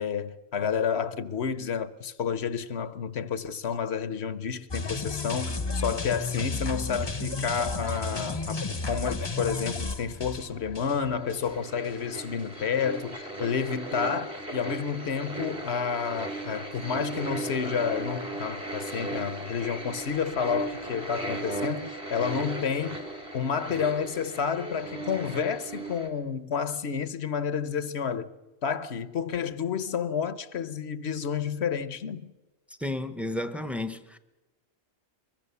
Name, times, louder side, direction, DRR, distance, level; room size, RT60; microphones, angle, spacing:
voice 1, 0.0-23.1 23.3-28.3 28.6-32.3, left 6 dB, 70° left, 1.2 m, -30 dB
sound 1, 4.7-11.5 11.8-12.0, left 3 dB, 25° left, 0.8 m, -33 dB
sound 2, 9.9-10.0 11.1-26.1, right 2 dB, 70° right, 3.5 m, -36 dB
voice 2, 32.8-34.2, left 1 dB, ahead, 0.8 m, -32 dB
23.5 x 21.5 x 7.0 m
omnidirectional pair, 1.1 m